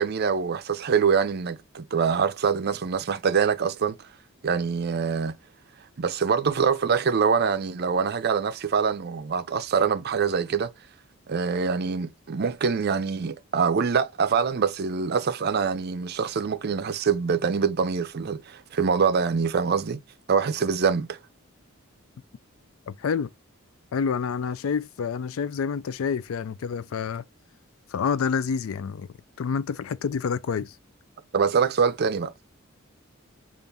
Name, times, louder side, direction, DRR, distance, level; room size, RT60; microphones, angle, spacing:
voice 1, 0.0-4.0 4.4-5.4 6.0-10.7 11.3-20.0 20.3-21.2 31.3-32.3, right 6 dB, 50° right, 0.5 m, -24 dB
voice 2, 22.9-23.3 23.9-27.3 27.9-29.1 29.4-30.8, left 6 dB, 70° left, 0.4 m, -28 dB
5.4 x 2.5 x 3.4 m
head